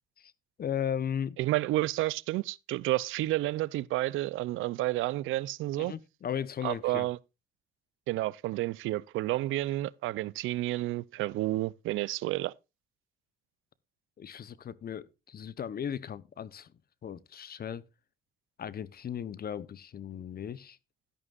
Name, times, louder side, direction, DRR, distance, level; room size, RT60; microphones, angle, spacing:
voice 1, 0.6-1.4 5.8-7.1 14.2-16.7 17.0-17.8 18.6-20.8, left 8 dB, 50° left, 0.9 m, -36 dB
voice 2, 1.4-5.9 6.6-7.2 8.1-12.5, right 17 dB, 90° right, 0.5 m, -30 dB
12.5 x 11.0 x 2.5 m
cardioid pair, 90°, 20 cm